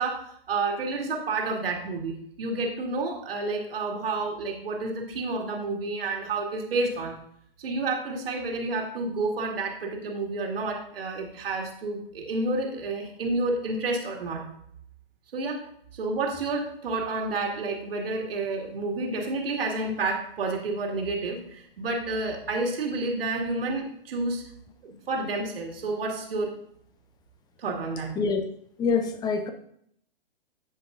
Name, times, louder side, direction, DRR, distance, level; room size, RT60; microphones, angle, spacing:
voice 1, 0.0-7.2 7.6-14.4 15.3-15.6 15.9-24.4 24.8-26.5 27.6-28.1, right 3 dB, 70° right, 2.1 m, -30 dB
voice 2, 28.8-29.5, left 5 dB, 15° left, 0.7 m, -25 dB
15.5 x 5.3 x 2.5 m
hypercardioid pair, 130°, 30 cm